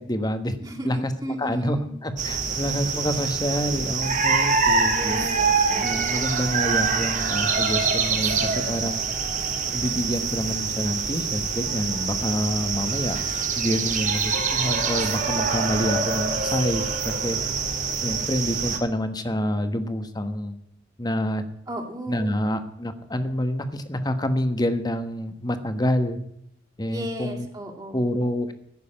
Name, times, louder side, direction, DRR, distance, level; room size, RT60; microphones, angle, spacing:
voice 1, 0.1-0.6 0.8-1.1 1.4-5.2 5.8-9.0 9.7-13.2 13.5-17.4 18.0-20.5 21.0-21.4 22.1-26.2 26.8-27.5 27.9-28.5, equal, 20° left, 9 dB, 1.3 m, -27 dB
voice 2, 0.6-1.9 4.9-6.3 21.7-22.4 26.9-28.1, equal, 20° right, 1 dB, 2.6 m, -34 dB
sound 1, 2.2-18.8, right 5 dB, 45° right, 1.9 m, -25 dB
15.0 x 6.8 x 8.7 m, 0.75 s
head